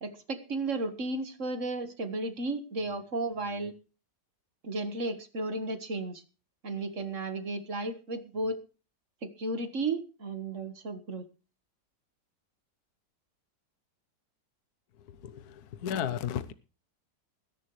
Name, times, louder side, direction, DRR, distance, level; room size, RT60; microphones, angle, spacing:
voice 1, 0.0-3.7 4.6-6.2 6.6-8.6 9.2-11.2, right 2 dB, 45° right, 1.8 m, -34 dB
voice 2, 15.8-16.5, left 9 dB, 65° left, 1.4 m, -32 dB
21.0 x 11.0 x 3.2 m
omnidirectional pair, 1.9 m